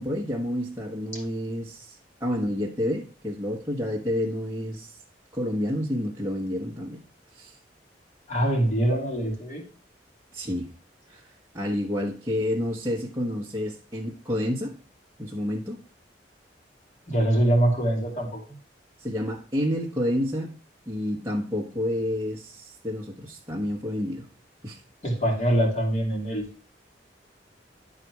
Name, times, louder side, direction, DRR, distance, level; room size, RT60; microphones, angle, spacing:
voice 1, 0.0-5.0 5.3-7.0 7.3-7.6 10.3-10.7 11.1-11.3 11.5-14.8 15.2-15.8 19.0-20.5 20.9-24.2 24.6-24.8, left 1 dB, 15° right, 1.1 m, -29 dB
voice 2, 8.3-9.6 17.1-18.4 25.0-26.5, right 1 dB, 40° left, 2.7 m, -24 dB
11.0 x 4.1 x 4.7 m
head